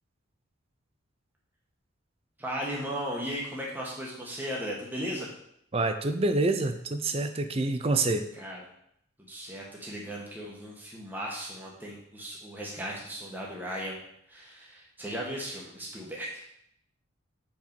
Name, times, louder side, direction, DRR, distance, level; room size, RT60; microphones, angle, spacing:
voice 1, 2.4-5.3 8.4-8.6 9.2-14.0 14.3-16.4, equal, 10° right, -3 dB, 1.2 m, -36 dB
voice 2, 5.7-8.3, right 2 dB, 30° right, 8 dB, 0.4 m, -27 dB
4.8 x 4.6 x 5.2 m, 0.73 s
head